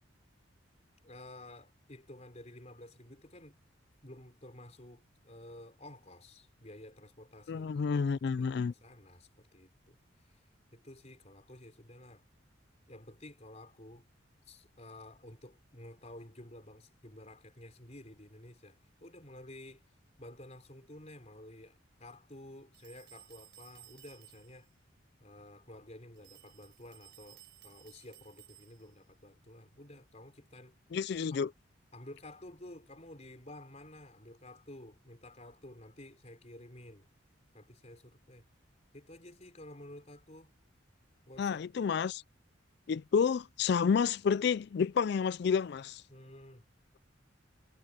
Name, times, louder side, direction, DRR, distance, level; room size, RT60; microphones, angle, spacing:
voice 1, 1.0-3.6 4.0-8.0 8.4-12.2 12.9-14.1 14.4-24.7 25.2-30.8 31.3-31.4 31.9-37.1 37.5-38.5 38.9-40.5 41.3-41.7 46.1-46.6, left 1 dB, 35° left, 4.8 m, -52 dB
voice 2, 7.5-8.7 30.9-31.5 41.4-42.2 42.9-46.0, left 6 dB, 55° left, 0.3 m, -30 dB
sound 1, 22.7-24.7 26.2-29.0, right 16 dB, 60° right, 4.8 m, -58 dB
head